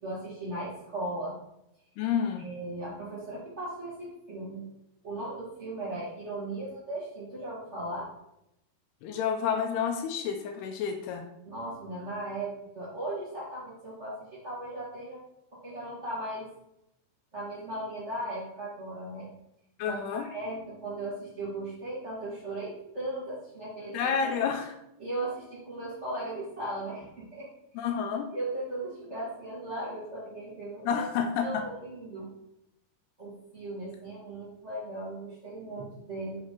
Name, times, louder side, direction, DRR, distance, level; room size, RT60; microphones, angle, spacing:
voice 1, 0.0-1.3 2.4-4.6 5.0-8.1 11.4-15.3 15.6-16.5 17.3-19.3 19.8-23.9 24.3-24.4 25.0-27.5 27.8-27.9 28.3-31.0 31.4-32.3 33.2-36.4, right 1 dB, 70° right, -9 dB, 0.6 m, -37 dB
voice 2, 2.0-2.5 9.0-11.3 19.8-20.3 23.9-24.7 27.8-28.3 30.8-31.6, left 7 dB, 80° left, 5 dB, 2.6 m, -29 dB
7.3 x 4.1 x 5.0 m, 0.83 s
omnidirectional pair, 4.9 m